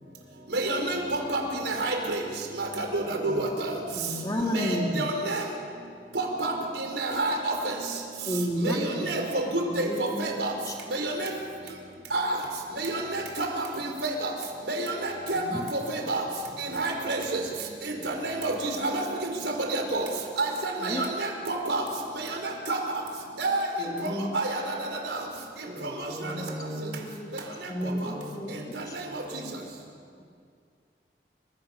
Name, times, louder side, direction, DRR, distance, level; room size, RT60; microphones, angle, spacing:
voice 1, 0.5-1.4 1.7-2.2 2.6-3.7 4.5-5.4 6.1-6.5 6.8-7.7 8.6-9.4 9.7-10.5 10.9-11.3 12.1-12.4 12.8-14.3 14.7-15.4 15.7-16.2 16.6-17.4 18.0-20.1 20.4-21.8 22.2-22.3 22.7-22.8 23.4-23.6 24.0-24.6 25.1-25.2, right 2 dB, 80° right, 2 dB, 5.2 m, -29 dB
voice 2, 3.0-3.5 4.5-4.9 8.7-9.3 9.6-9.7 11.8-11.9 16.9-17.2 17.9-18.3 25.6-27.0 27.8-28.7 28.9-29.6, equal, 20° right, 2 dB, 4.4 m, -39 dB
voice 3, 3.9-5.0 8.3-9.2 9.6-10.4 10.7-11.0 15.3-15.6 20.8-21.1 23.8-24.4 26.2-26.5 26.8-27.3 27.7-29.0, equal, 20° left, 1 dB, 2.6 m, -32 dB
30.0 x 26.0 x 6.9 m, 2.2 s
head